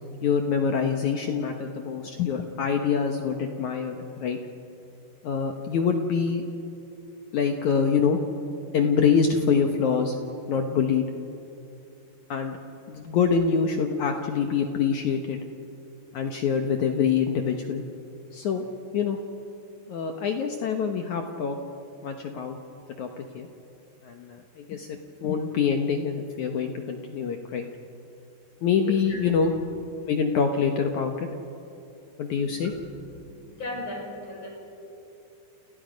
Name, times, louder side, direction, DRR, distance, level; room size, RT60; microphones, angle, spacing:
voice 1, 0.2-4.4 5.2-6.5 7.3-8.2 8.7-10.1 10.5-11.1 12.3-12.6 12.9-15.4 16.1-17.8 18.3-18.6 18.9-19.2 19.9-21.6 22.0-22.6 23.0-23.5 24.0-27.7 28.6-29.5 30.1-31.3 32.2-32.7, left 6 dB, 75° left, 4 dB, 1.8 m, -25 dB
voice 2, 28.9-29.2 32.6-33.2 33.6-34.6, left 2 dB, 30° left, 0 dB, 5.6 m, -38 dB
30.0 x 29.5 x 5.2 m, 2.8 s
omnidirectional pair, 5.0 m